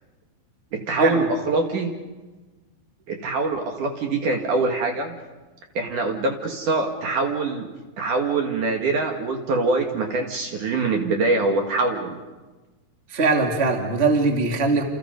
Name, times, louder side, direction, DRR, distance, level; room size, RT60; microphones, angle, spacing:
voice 1, 0.7-2.0 3.1-5.2 5.7-7.7 8.0-12.2, right 3 dB, 55° right, 3 dB, 3.0 m, -24 dB
voice 2, 13.1-14.8, right 3 dB, 20° right, 3 dB, 2.2 m, -21 dB
29.0 x 28.5 x 5.3 m, 1.2 s
omnidirectional pair, 4.7 m